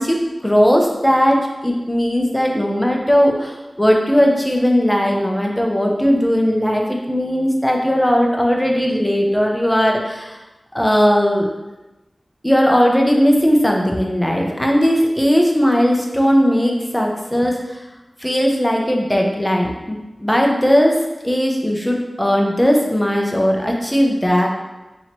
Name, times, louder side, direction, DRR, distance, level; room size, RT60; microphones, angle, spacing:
voice 1, 0.0-10.4 10.7-11.5 12.4-17.8 18.2-21.0 21.2-24.5, equal, 10° left, 0 dB, 0.6 m, -17 dB
2.9 x 2.7 x 4.3 m, 1.1 s
wide cardioid pair, 65°, 0 cm